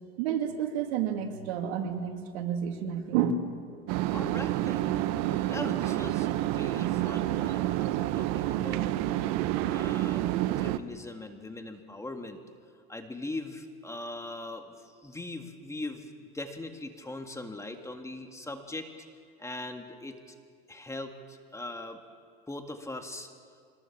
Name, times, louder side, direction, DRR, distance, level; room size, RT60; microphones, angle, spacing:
voice 1, 0.2-3.3, right 9 dB, 80° right, 4 dB, 2.8 m, -30 dB
sound 1, 3.9-10.8, right 14 dB, 60° right, 1.0 m, -29 dB
voice 2, 4.1-5.0 5.3-8.9 9.6-10.3 10.6-12.4 12.9-18.9 19.4-20.4 20.7-22.0 22.5-23.3, left 2 dB, 10° left, 5 dB, 2.0 m, -40 dB
25.0 x 20.5 x 7.3 m, 2.1 s
supercardioid pair, 115°, 31 cm